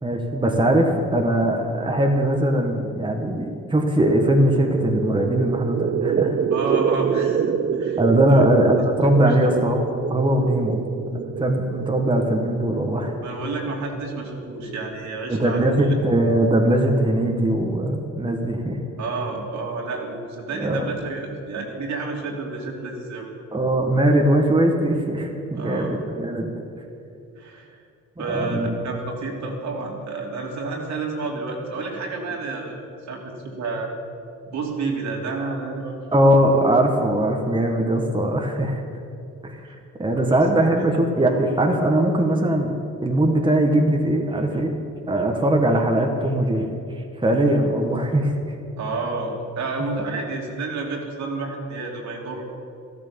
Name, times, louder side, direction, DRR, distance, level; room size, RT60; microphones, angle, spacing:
voice 1, 0.0-6.4 8.0-9.8 10.1-10.8 11.4-13.1 15.3-18.8 20.5-20.9 23.5-26.5 28.2-28.8 36.1-38.8 39.4-39.7 40.0-42.7 43.0-44.8 45.1-46.7 47.2-48.3 50.1-50.2, right 1 dB, 15° right, 2 dB, 1.7 m, -20 dB
sound 1, 4.1-15.6, right 7 dB, 35° right, 0.6 m, -27 dB
voice 2, 6.5-8.0 8.3-8.4 9.2-9.4 13.2-15.9 19.0-23.3 25.5-26.0 27.4-27.8 28.2-32.8 33.1-33.9 34.5-36.0 39.6-39.7 40.2-40.4 48.8-52.4, right 3 dB, 65° right, 0 dB, 3.1 m, -30 dB
13.5 x 13.0 x 7.1 m, 2.5 s
cardioid pair, 90°, 30 cm